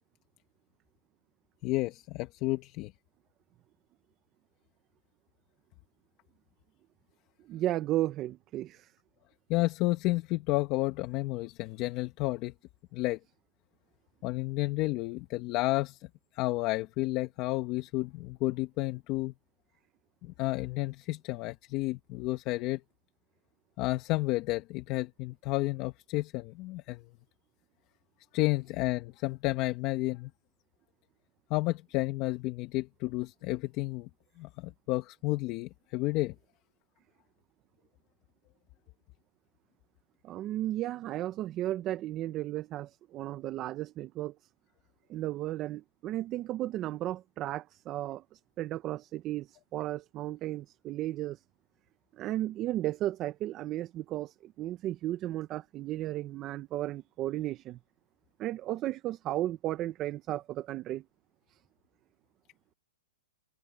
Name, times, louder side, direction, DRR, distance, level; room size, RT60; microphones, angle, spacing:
voice 1, 1.6-2.9 9.5-12.5 12.9-13.2 14.2-16.1 16.3-19.3 20.4-22.8 23.8-27.0 28.3-30.3 31.5-34.1 34.4-36.3, left 20 dB, 30° left, 1.4 m, -31 dB
voice 2, 7.5-8.9 40.2-44.3 45.1-51.4 52.1-57.8 58.4-61.0 61.5-61.6, right 14 dB, 25° right, 0.8 m, -34 dB
hypercardioid pair, 155°, 0 cm